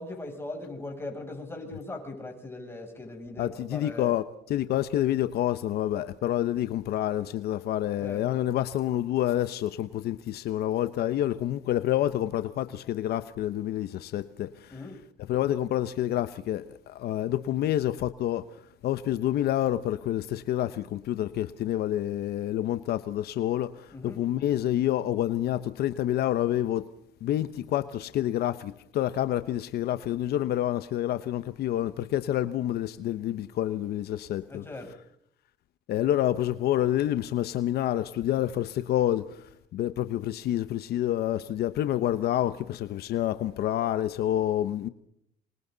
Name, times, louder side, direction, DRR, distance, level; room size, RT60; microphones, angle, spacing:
voice 1, 0.0-4.1 8.0-8.2 14.7-15.0 23.9-24.2 34.5-34.9, left 2 dB, 15° left, 2 dB, 7.8 m, -39 dB
voice 2, 3.4-4.2 4.5-14.5 15.3-16.6 17.0-18.4 18.8-23.7 24.2-26.8 27.2-34.6 35.9-39.2 39.7-44.9, left 12 dB, 70° left, 12 dB, 1.0 m, -28 dB
26.0 x 25.5 x 4.0 m, 0.71 s
cardioid pair, 110°, 17 cm